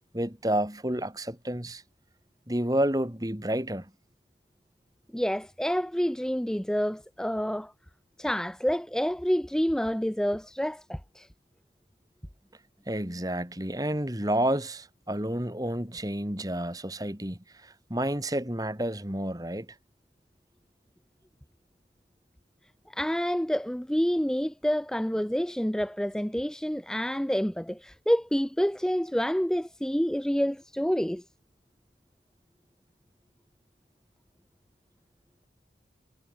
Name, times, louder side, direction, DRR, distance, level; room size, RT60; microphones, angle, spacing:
voice 1, 0.1-1.8 2.5-3.9 12.9-19.7, right 1 dB, 20° right, 2.5 m, -30 dB
voice 2, 5.1-7.7 8.2-11.3 22.9-31.2, equal, 5° left, 0.5 m, -28 dB
head